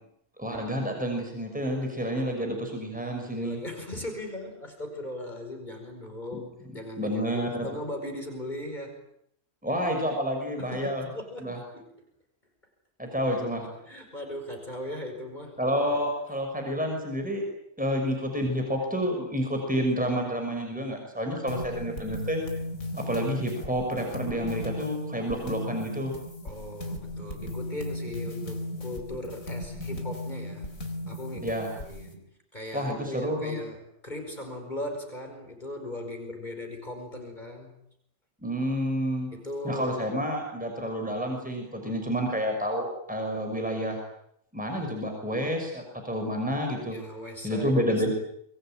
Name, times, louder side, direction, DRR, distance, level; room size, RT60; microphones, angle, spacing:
voice 1, 0.4-3.6 6.3-6.4 7.0-7.7 9.6-11.0 11.4-11.6 13.0-13.6 15.6-17.4 17.8-22.4 23.0-26.1 31.4-31.7 32.7-33.5 38.4-39.3 39.6-44.0 44.5-47.0 47.4-48.1, equal, 5° right, 2 dB, 5.9 m, -29 dB
voice 2, 3.4-9.0 10.6-12.0 13.3-16.0 26.4-30.7 31.1-37.7 39.3-40.0 46.9-48.1, left 1 dB, 30° left, 3 dB, 5.3 m, -38 dB
sound 1, 21.5-32.1, left 1 dB, 65° left, 4.6 m, -36 dB
26.0 x 22.0 x 9.0 m, 0.74 s
omnidirectional pair, 1.5 m